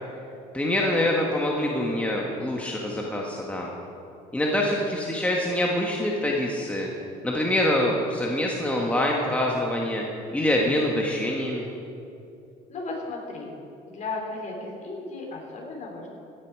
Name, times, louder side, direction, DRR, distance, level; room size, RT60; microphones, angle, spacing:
voice 1, 0.5-3.7 4.3-6.9 7.2-10.0 10.3-11.7, left 1 dB, 5° left, -2 dB, 1.5 m, -25 dB
voice 2, 12.7-13.5 13.9-16.1, left 3 dB, 40° left, -1 dB, 3.6 m, -35 dB
16.5 x 9.9 x 4.7 m, 2.7 s
cardioid pair, 100°, 18 cm